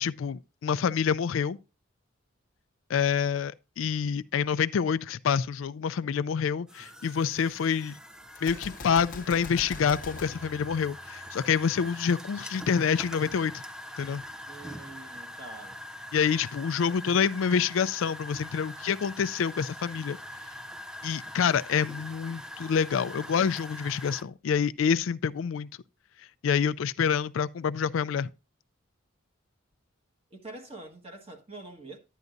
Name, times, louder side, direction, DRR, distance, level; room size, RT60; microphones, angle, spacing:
voice 1, 0.0-1.6 2.9-8.0 8.4-13.6 14.0-14.2 16.1-20.2 21.0-25.7 26.4-28.3, left 7 dB, 80° left, 0.4 m, -27 dB
sound 1, 6.7-24.2, left 1 dB, 5° right, 0.5 m, -43 dB
Gunshot gunfire, 8.3-11.5, left 3 dB, 40° left, 0.8 m, -43 dB
voice 2, 14.5-15.8 30.3-32.0, right 2 dB, 30° right, 1.4 m, -45 dB
11.0 x 9.3 x 2.6 m
head